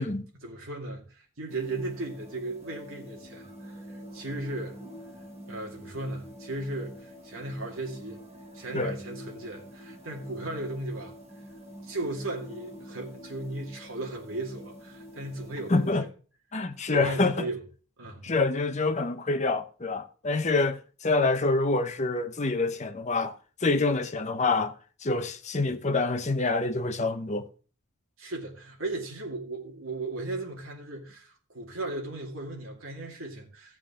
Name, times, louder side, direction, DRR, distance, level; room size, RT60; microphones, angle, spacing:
voice 1, 0.0-4.8 5.5-8.2 8.5-11.1 11.8-15.9 16.9-17.6 18.0-18.3 28.2-33.8, right 2 dB, 75° right, 2.4 m, -36 dB
sound 1, 1.5-15.9, equal, 35° right, 3.6 m, -46 dB
voice 2, 15.7-16.0 16.5-17.5 18.2-23.4 23.6-24.8 25.0-27.5, left 3 dB, 35° left, 0.8 m, -26 dB
15.0 x 7.3 x 3.7 m
head